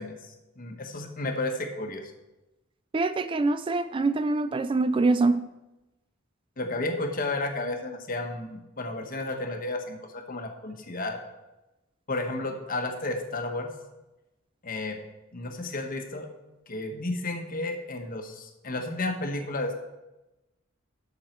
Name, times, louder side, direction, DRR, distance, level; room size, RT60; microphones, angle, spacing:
voice 1, 0.0-2.0 6.6-11.2 12.1-13.7 14.6-15.0 15.3-16.3 16.7-19.8, left 2 dB, 45° left, 4 dB, 1.3 m, -32 dB
voice 2, 2.9-5.4, right 3 dB, 25° right, 12 dB, 0.3 m, -24 dB
12.0 x 6.6 x 4.5 m, 1.0 s
head